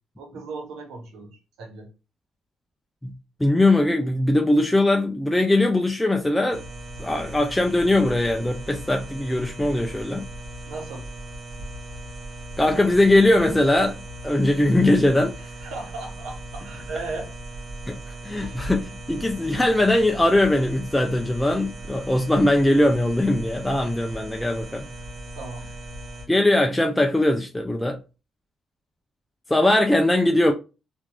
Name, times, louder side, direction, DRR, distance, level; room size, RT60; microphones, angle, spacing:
voice 1, 0.2-1.9 10.7-11.1 15.4-17.3 18.4-18.7 25.4-25.7, right 3 dB, 90° right, 1.0 m, -37 dB
voice 2, 3.4-6.6 7.0-10.3 12.6-14.0 14.2-15.3 17.9-18.0 18.2-24.9 26.3-28.0 29.5-30.5, left 1 dB, 10° left, 0.4 m, -20 dB
sound 1, 6.5-26.3, right 1 dB, 50° right, 1.1 m, -38 dB
3.1 x 2.5 x 2.3 m
cardioid pair, 90°, 0 cm